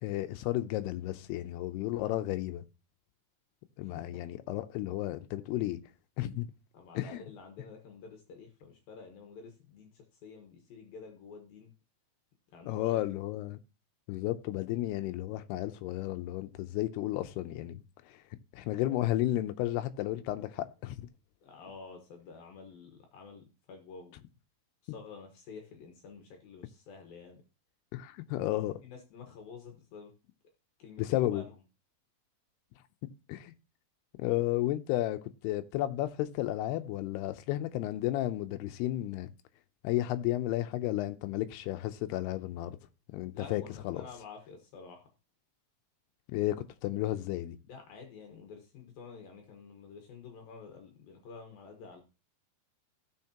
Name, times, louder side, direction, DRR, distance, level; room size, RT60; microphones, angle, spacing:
voice 1, 0.0-2.6 3.8-5.8 6.2-6.5 7.0-7.2 12.7-13.6 14.1-17.8 18.5-21.0 27.9-28.7 31.0-31.4 33.3-33.5 34.2-39.3 39.8-42.8 43.1-44.0 46.3-47.6, left 15 dB, 80° left, 2.7 m, -33 dB
voice 2, 3.8-4.2 6.7-11.7 12.5-13.0 21.4-24.1 24.8-27.4 28.4-30.1 30.8-31.6 43.3-45.1 47.6-52.0, left 5 dB, 65° left, 3.1 m, -49 dB
15.5 x 6.4 x 2.9 m
omnidirectional pair, 4.7 m